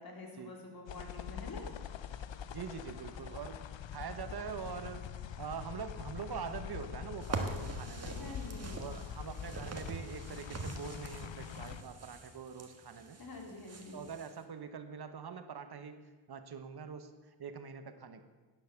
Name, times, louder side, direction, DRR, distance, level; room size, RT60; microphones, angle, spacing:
voice 1, 0.0-1.8 8.1-8.8 13.2-14.0, left 2 dB, 50° left, 1 dB, 3.2 m, -47 dB
sound 1, 0.9-11.8, left 9 dB, 75° left, 0.8 m, -44 dB
voice 2, 2.5-3.6 3.9-8.4 8.8-13.2 13.9-16.0 16.3-18.2, right 6 dB, 55° right, 9 dB, 1.1 m, -44 dB
sound 2, 7.2-14.4, right 3 dB, 30° right, 1.6 m, -44 dB
11.5 x 10.0 x 7.0 m, 1.3 s
wide cardioid pair, 105°, 46 cm